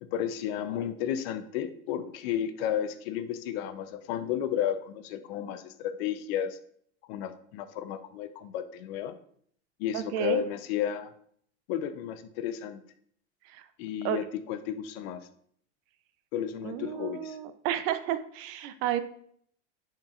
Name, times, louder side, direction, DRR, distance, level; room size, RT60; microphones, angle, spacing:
voice 1, 0.0-6.6 7.1-9.2 9.8-11.1 11.7-12.8 13.8-15.3 16.3-17.4, left 10 dB, 65° left, 11 dB, 0.7 m, -33 dB
voice 2, 9.9-10.4 13.4-13.6 14.0-14.2 16.6-19.0, right 11 dB, 50° right, 12 dB, 0.5 m, -31 dB
10.0 x 4.6 x 2.4 m, 0.63 s
supercardioid pair, 135°, 33 cm